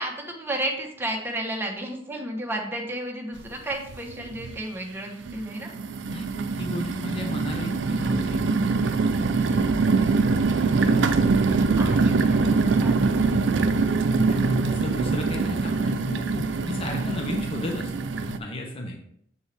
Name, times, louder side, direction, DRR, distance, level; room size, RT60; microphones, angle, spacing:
voice 1, 0.0-5.7 9.3-9.8 11.5-12.4 12.7-13.5, right 1 dB, 10° right, 1 dB, 1.0 m, -33 dB
sound 1, 3.4-3.5 3.9-4.5 5.2-18.4, right 4 dB, 90° right, 0.4 m, -23 dB
voice 2, 6.0-8.6 10.5-11.3 12.8-12.9 14.3-17.9 18.3-19.0, left 1 dB, 30° left, 2 dB, 0.8 m, -34 dB
6.9 x 4.4 x 3.4 m, 0.69 s
head